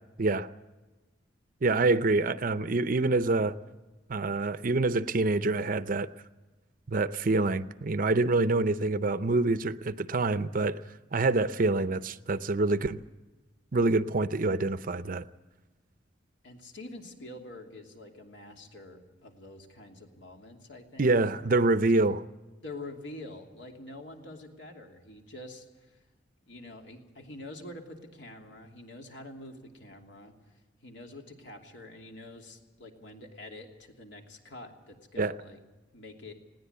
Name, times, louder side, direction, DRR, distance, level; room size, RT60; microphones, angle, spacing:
voice 1, 1.6-3.6 4.1-6.1 6.9-10.8 11.1-13.0 13.7-15.2 21.0-22.2 35.2-35.3, right 3 dB, 50° right, 0.6 m, -26 dB
voice 2, 16.4-21.4 21.9-22.0 22.6-26.0 26.4-30.3 30.8-35.6 35.9-36.3, left 2 dB, 75° left, 2.9 m, -46 dB
20.5 x 18.0 x 8.2 m
head